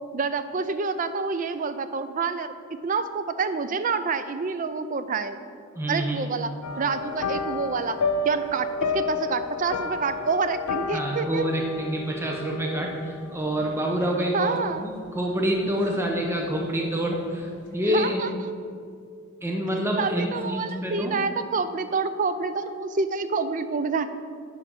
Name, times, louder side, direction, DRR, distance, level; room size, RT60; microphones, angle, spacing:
voice 1, 0.1-2.5 2.8-5.4 5.9-6.5 6.8-8.0 8.2-11.5 14.3-14.9 17.9-18.3 20.0-24.1, right 4 dB, 35° right, 11 dB, 0.4 m, -27 dB
voice 2, 5.8-6.2 10.9-18.2 19.4-21.1, equal, 10° right, 0 dB, 0.7 m, -27 dB
sound 1, 6.6-16.2 16.5-16.9 17.2-17.3, left 3 dB, 90° left, 0.5 m, -32 dB
11.0 x 4.0 x 6.2 m, 2.3 s
head